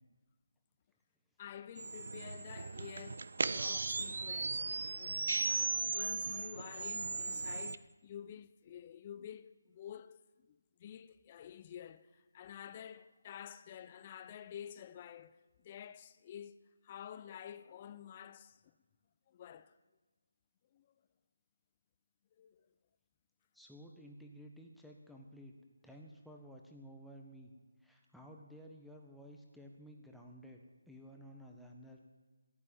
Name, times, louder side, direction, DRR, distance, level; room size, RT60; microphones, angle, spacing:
voice 1, 1.4-4.7 5.0-18.7 19.3-19.8 20.7-20.9 22.4-22.7, left 9 dB, 25° left, 0.6 m, -50 dB
sound 1, 1.8-7.8, right 3 dB, 65° right, 0.6 m, -37 dB
voice 2, 23.5-25.5 25.8-27.5 27.8-30.6 30.9-32.0, equal, ahead, 1.3 m, -54 dB
15.5 x 8.7 x 8.9 m
figure-of-eight pair, 160°, 0 cm